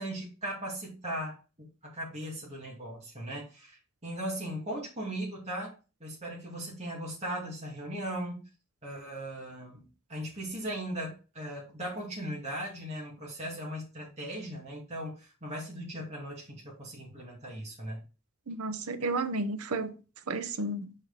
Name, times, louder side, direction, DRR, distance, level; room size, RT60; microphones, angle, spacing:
voice 1, 0.0-5.7 6.0-8.4 8.8-18.0, right 1 dB, 30° right, 2.2 m, -38 dB
voice 2, 18.5-20.0 20.3-20.9, right 2 dB, 75° right, 0.8 m, -32 dB
5.3 x 4.8 x 3.9 m
head